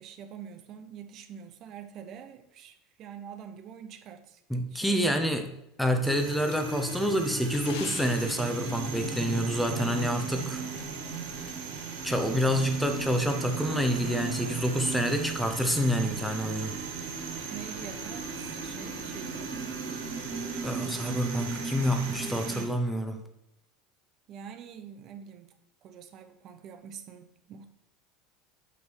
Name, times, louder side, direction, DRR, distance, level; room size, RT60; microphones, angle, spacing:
voice 1, 0.0-4.4 4.7-5.4 17.4-19.5 24.3-25.5 25.8-27.7, right 8 dB, 45° right, 0.7 m, -45 dB
voice 2, 4.5-5.5 5.8-10.6 12.0-16.8 20.6-23.2, equal, ahead, 0.9 m, -28 dB
sound 1, 6.0-22.6, right 5 dB, 85° right, 2.3 m, -36 dB
sound 2, 6.5-10.5 10.8-10.9 11.5-11.6, left 9 dB, 65° left, 0.9 m, -47 dB
8.4 x 3.6 x 6.3 m
supercardioid pair, 135°, 0 cm